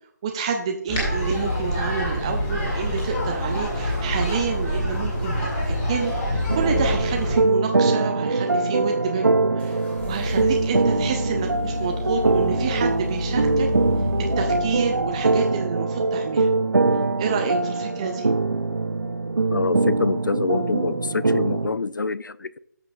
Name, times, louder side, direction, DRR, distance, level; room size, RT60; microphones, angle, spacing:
voice 1, 0.2-13.7 14.2-16.5 17.2-18.3, right 6 dB, 20° right, 3 dB, 0.4 m, -29 dB
sound 1, 0.9-7.3, equal, 15° left, 2.2 m, -26 dB
sound 2, 6.5-21.7, right 3 dB, 70° right, 0.7 m, -23 dB
sound 3, 9.6-15.5, left 2 dB, 35° left, 1.9 m, -30 dB
voice 2, 19.5-22.6, left 4 dB, 80° left, 17 dB, 0.4 m, -26 dB
13.0 x 5.7 x 2.3 m, 0.75 s
figure-of-eight pair, 150°, 10 cm